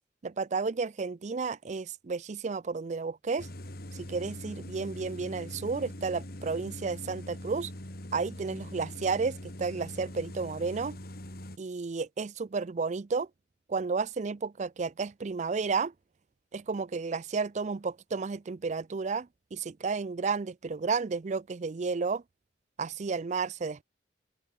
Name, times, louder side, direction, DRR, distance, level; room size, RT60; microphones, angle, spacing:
voice 1, 0.2-3.5 4.0-7.7 8.1-11.0 11.6-13.3 13.7-15.9 16.5-22.2 22.8-23.8, right 4 dB, 40° right, 0.4 m, -32 dB
sound 1, 3.4-11.6, left 1 dB, 55° left, 3.6 m, -42 dB
open air
head